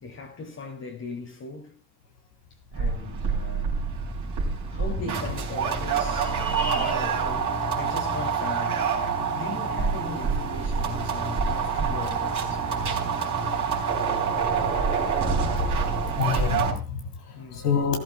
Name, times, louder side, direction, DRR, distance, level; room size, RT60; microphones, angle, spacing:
voice 1, 0.0-1.7 2.7-3.8 4.7-6.4 6.7-8.8 9.3-13.0 17.4-17.7, left 3 dB, 35° left, 2.6 m, -39 dB
sound 1, 2.7-16.7, right 5 dB, 40° right, 4.1 m, -26 dB
voice 2, 6.4-6.9 9.1-9.2 15.9-18.0, left 6 dB, 80° left, 2.2 m, -28 dB
15.5 x 13.0 x 2.2 m
figure-of-eight pair, 50°, 45 cm